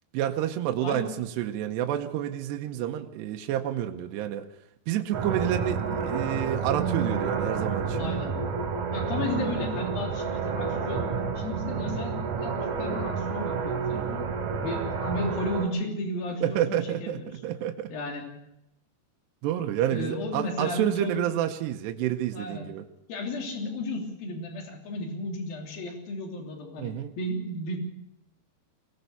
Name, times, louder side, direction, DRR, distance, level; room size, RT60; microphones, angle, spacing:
voice 1, 0.1-4.5 4.9-8.0 13.9-14.2 16.4-17.9 19.4-22.9 26.8-27.1, right 11 dB, 80° right, 4 dB, 3.0 m, -29 dB
sound 1, 5.1-15.7, right 5 dB, 50° right, 3.3 m, -30 dB
voice 2, 7.9-8.4 8.9-14.3 14.6-17.3 17.9-18.3 19.9-21.3 22.3-22.6 23.1-27.8, left 1 dB, 55° left, 2 dB, 4.8 m, -34 dB
22.5 x 18.0 x 6.8 m, 0.83 s
omnidirectional pair, 5.0 m